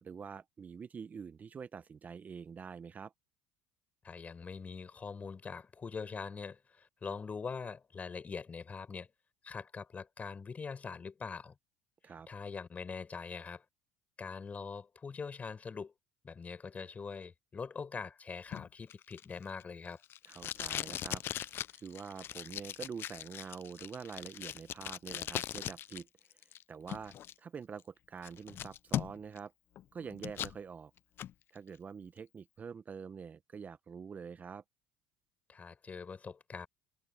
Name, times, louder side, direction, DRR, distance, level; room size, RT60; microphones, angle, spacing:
voice 1, 0.0-3.1 12.0-12.3 20.3-26.1 26.3-29.5 29.9-30.9 31.5-34.6, right 6 dB, 30° right, 1.0 m, -46 dB
voice 2, 4.0-9.1 9.4-11.5 12.3-13.6 14.2-15.9 16.2-20.0 35.5-36.7, left 5 dB, 30° left, 4.9 m, -43 dB
Packing tape duct tape, 18.5-26.0 26.3-27.3 27.8-27.9 28.2-29.4 29.8-30.6 31.0-31.3, left 11 dB, 50° left, 0.6 m, -40 dB
hypercardioid pair, 75°, 5 cm